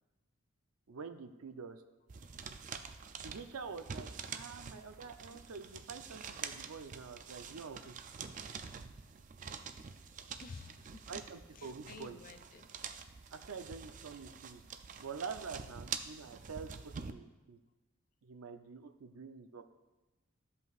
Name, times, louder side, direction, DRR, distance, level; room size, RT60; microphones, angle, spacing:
voice 1, 0.9-1.8 3.2-7.9 11.1-12.2 13.3-14.6 15.0-17.6 18.2-19.6, right 5 dB, 85° right, 8 dB, 0.6 m, -47 dB
sound 1, 2.1-17.1, right 6 dB, 35° right, 0.3 m, -46 dB
voice 2, 10.4-11.1 11.5-12.7, left 4 dB, 40° left, 9 dB, 0.3 m, -51 dB
14.0 x 5.4 x 2.4 m, 1.1 s
head